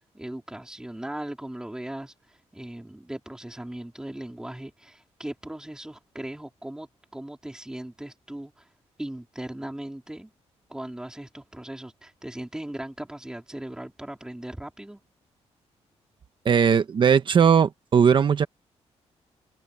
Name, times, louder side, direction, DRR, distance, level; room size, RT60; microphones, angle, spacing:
voice 1, 0.1-8.7 9.0-10.3 10.7-15.0, right 1 dB, 5° right, 3.4 m, -38 dB
voice 2, 16.4-18.5, right 7 dB, 45° right, 1.3 m, -19 dB
wide cardioid pair, 150°, 11 cm